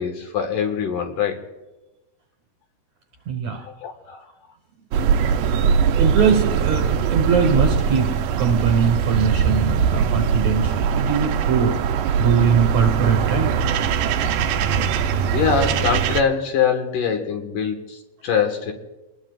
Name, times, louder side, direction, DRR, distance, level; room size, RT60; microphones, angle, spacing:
voice 1, 0.0-1.4 3.6-4.2 15.3-18.7, left 6 dB, 65° left, 4 dB, 2.9 m, -23 dB
voice 2, 3.3-3.6 6.0-8.1 8.4-11.8 12.2-13.5, right 6 dB, 60° right, 3 dB, 2.1 m, -21 dB
sound 1, 4.9-16.2, right 7 dB, 75° right, 2.2 m, -21 dB
28.0 x 20.0 x 2.4 m, 1.0 s
omnidirectional pair, 4.3 m